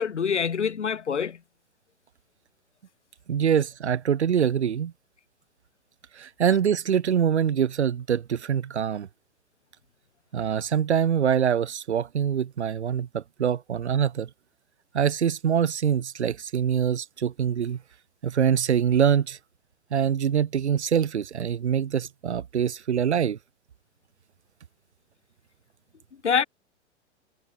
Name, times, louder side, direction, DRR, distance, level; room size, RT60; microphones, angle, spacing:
voice 1, 0.0-1.4 26.2-26.4, left 7 dB, 75° left, 2.9 m, -25 dB
voice 2, 3.3-4.9 6.1-9.1 10.3-14.3 14.9-17.8 18.2-19.4 19.9-23.4, right 8 dB, 65° right, 3.9 m, -24 dB
figure-of-eight pair, 100°, 35 cm